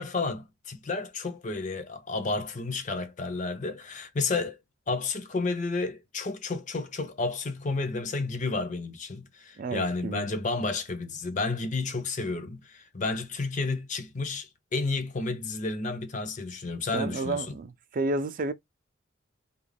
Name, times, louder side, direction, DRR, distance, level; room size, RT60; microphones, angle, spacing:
voice 1, 0.0-4.6 4.9-17.6, left 3 dB, 40° left, 0.5 m, -31 dB
voice 2, 9.6-10.3 16.9-18.5, right 2 dB, 45° right, 0.4 m, -31 dB
2.4 x 2.1 x 3.2 m
head